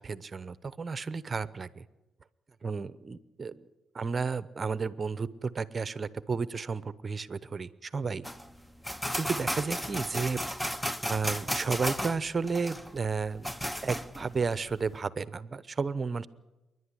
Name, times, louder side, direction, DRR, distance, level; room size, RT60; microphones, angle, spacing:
voice 1, 0.0-1.8 2.6-3.7 3.9-8.2 9.2-10.4 11.0-13.5 13.8-16.3, right 5 dB, 35° right, 16 dB, 0.8 m, -32 dB
person typing on typewriter, 8.2-14.9, equal, 5° left, 0.7 m, -34 dB
27.5 x 11.0 x 9.9 m, 1.1 s
cardioid pair, 90°, 0 cm